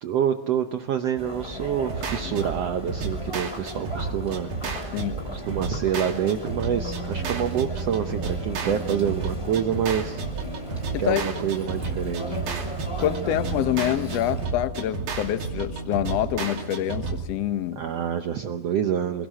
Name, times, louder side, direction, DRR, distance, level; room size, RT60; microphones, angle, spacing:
voice 1, 0.0-4.5 5.2-10.2 11.0-12.4 17.8-19.3, right 9 dB, 85° right, 7 dB, 1.4 m, -27 dB
Chatter, 1.2-14.5, left 1 dB, 10° left, 1.9 m, -37 dB
sound 1, 1.9-17.2, right 4 dB, 70° right, 4.5 m, -32 dB
voice 2, 13.0-17.8, left 12 dB, 70° left, 11 dB, 1.6 m, -26 dB
26.5 x 17.5 x 6.4 m, 1.0 s
omnidirectional pair, 4.1 m